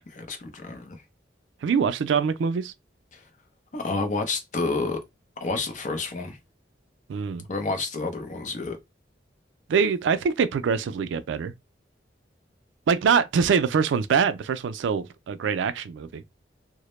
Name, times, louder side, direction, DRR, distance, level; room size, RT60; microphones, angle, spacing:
voice 1, 0.1-1.0 3.1-3.2 3.7-5.0 5.4-6.4 7.5-8.8, left 3 dB, 45° left, 0.5 m, -29 dB
voice 2, 1.6-2.7 7.1-7.4 9.7-11.5 12.9-16.2, right 6 dB, 85° right, 0.3 m, -24 dB
2.0 x 2.0 x 3.0 m
head